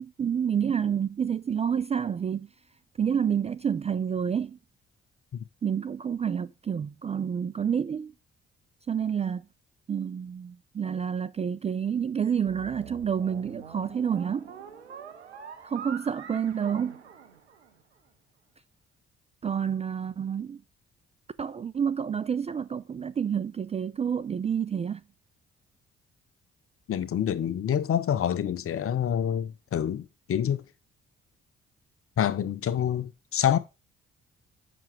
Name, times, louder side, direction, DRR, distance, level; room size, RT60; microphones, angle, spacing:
voice 1, 0.0-2.5 3.0-4.6 5.6-8.1 8.9-9.5 9.9-14.5 15.6-17.0 19.4-20.6 21.4-25.0, right 7 dB, 20° right, 0.4 m, -29 dB
sound 1, 12.5-17.9, right 7 dB, 90° right, 0.6 m, -45 dB
voice 2, 26.9-30.6 32.2-33.6, left 9 dB, 45° left, 0.8 m, -27 dB
7.5 x 6.0 x 4.6 m
figure-of-eight pair, 40°, 32 cm